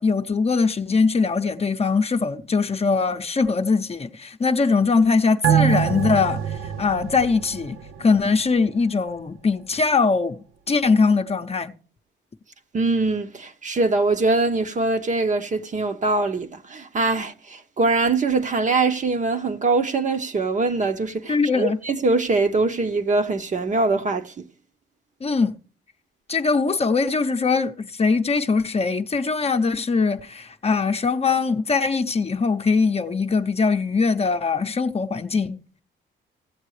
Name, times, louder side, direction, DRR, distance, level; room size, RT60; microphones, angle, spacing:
voice 1, 0.0-6.4 6.8-11.7 21.3-21.8 25.2-25.6 26.3-35.6, left 4 dB, 30° left, 0.8 m, -21 dB
sound 1, 5.4-8.3 8.7-8.8, right 9 dB, 90° right, 0.7 m, -24 dB
voice 2, 12.7-24.5, right 3 dB, 40° right, 0.9 m, -23 dB
16.5 x 7.4 x 3.2 m
cardioid pair, 90°, 20 cm